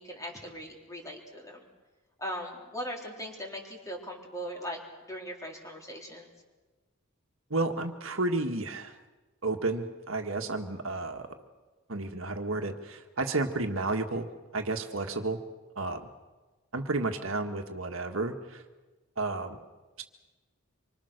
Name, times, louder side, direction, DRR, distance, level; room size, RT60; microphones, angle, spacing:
voice 1, 0.0-1.7 2.2-6.3, equal, 15° left, 0 dB, 4.3 m, -39 dB
voice 2, 7.5-8.9 9.4-11.3 11.9-14.3 14.5-15.4 15.8-16.1 16.7-18.6 19.2-19.6 20.0-20.1, right 2 dB, 65° right, 5 dB, 1.7 m, -31 dB
26.0 x 24.5 x 6.7 m, 1.2 s
head